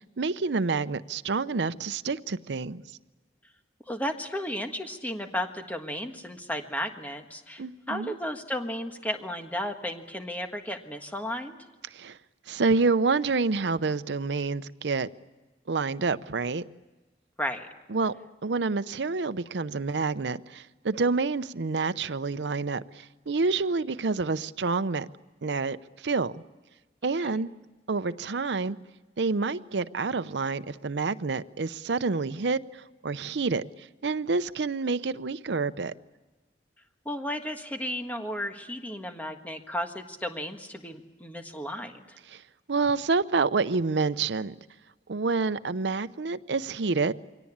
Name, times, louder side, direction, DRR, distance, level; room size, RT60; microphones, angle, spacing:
voice 1, 0.2-2.8 7.6-8.2 11.9-12.1 12.5-15.1 15.7-16.6 17.9-18.1 18.4-25.1 25.4-25.8 26.0-26.4 27.0-27.5 27.9-28.8 29.2-32.6 33.0-33.6 34.0-35.9 42.7-44.5 45.1-47.1, right 4 dB, 85° right, 0.6 m, -28 dB
voice 2, 3.9-11.6 17.4-17.7 27.2-27.4 37.0-42.2, equal, 10° left, 1.5 m, -34 dB
23.5 x 18.0 x 8.6 m
head